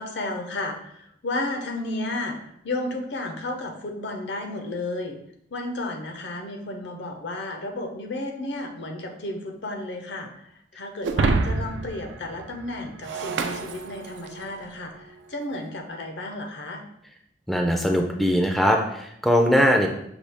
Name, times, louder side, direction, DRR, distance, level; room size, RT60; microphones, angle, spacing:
voice 1, 0.0-5.2 5.5-16.8, left 2 dB, 75° left, 4 dB, 0.7 m, -33 dB
Shatter, 11.0-14.5, right 4 dB, 80° right, 0.4 m, -27 dB
voice 2, 17.5-19.9, equal, ahead, 2 dB, 0.4 m, -20 dB
5.9 x 2.3 x 3.4 m, 0.73 s
head